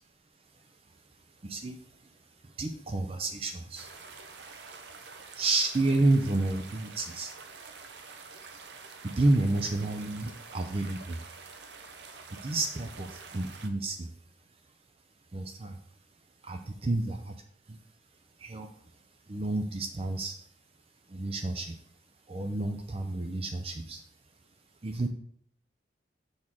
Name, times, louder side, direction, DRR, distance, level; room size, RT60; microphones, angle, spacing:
voice 1, 0.5-1.0 1.4-3.9 5.1-7.3 8.9-11.2 12.3-13.1 13.3-14.1 15.3-15.8 16.4-17.3 17.7-17.8 18.4-18.7 19.3-20.4 21.1-21.8 22.3-24.0 24.8-25.1, right 2 dB, 35° right, 6 dB, 0.5 m, -30 dB
sound 1, 3.8-13.7, right 4 dB, 75° right, 0.8 m, -47 dB
6.4 x 3.7 x 6.1 m, 0.63 s
head